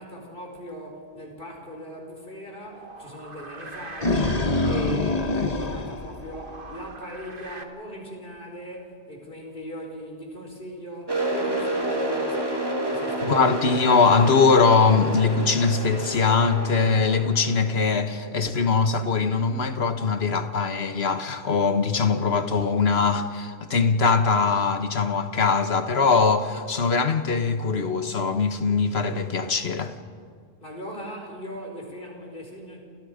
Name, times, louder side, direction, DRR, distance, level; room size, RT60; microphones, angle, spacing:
voice 1, 0.0-13.6 30.6-32.8, equal, 60° left, 5.0 m, -39 dB
sound 1, 2.6-7.6, right 3 dB, 60° right, 1.8 m, -43 dB
sound 2, 3.7-6.9, left 2 dB, 40° left, 1.3 m, -25 dB
sound 3, 11.1-18.7, right 1 dB, 25° right, 2.3 m, -30 dB
voice 2, 13.2-29.9, left 4 dB, 80° left, 1.6 m, -22 dB
29.0 x 29.0 x 5.2 m
omnidirectional pair, 1.0 m